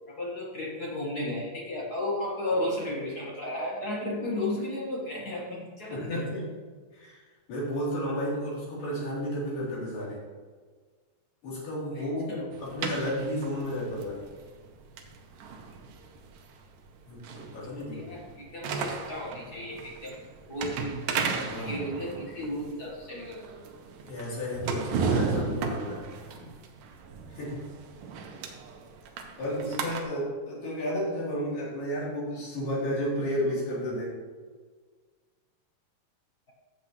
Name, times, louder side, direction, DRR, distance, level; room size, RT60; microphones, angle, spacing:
voice 1, 0.1-6.2 11.9-12.4 17.9-20.2 20.5-23.4, left 1 dB, 40° left, -4 dB, 1.4 m, -34 dB
voice 2, 5.8-6.4 6.9-7.2 7.5-10.2 11.4-14.2 17.1-18.1 21.4-21.8 24.1-26.0 26.4-26.5 27.3-27.6 29.4-34.1, equal, 90° left, -7 dB, 5.1 m, -32 dB
sound 1, 12.5-30.0, right 5 dB, 80° right, 2.6 m, -35 dB
13.5 x 7.6 x 3.1 m, 1.5 s
omnidirectional pair, 3.8 m